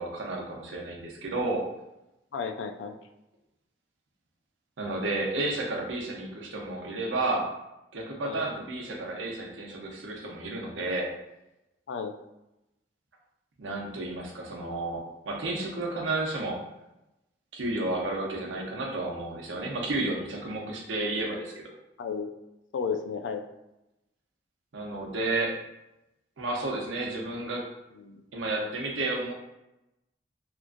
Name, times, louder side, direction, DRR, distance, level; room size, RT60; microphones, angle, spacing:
voice 1, 0.0-1.6 4.8-7.5 7.9-11.1 13.6-16.6 17.5-21.6 24.7-25.6 26.4-27.7 28.3-29.3, right 2 dB, 90° right, -1 dB, 0.7 m, -31 dB
voice 2, 2.3-3.0 8.2-8.4 11.9-12.1 18.5-18.6 22.0-22.3 22.7-23.4 27.9-28.2, left 6 dB, 75° left, 6 dB, 0.3 m, -33 dB
2.9 x 2.4 x 2.5 m, 0.91 s
head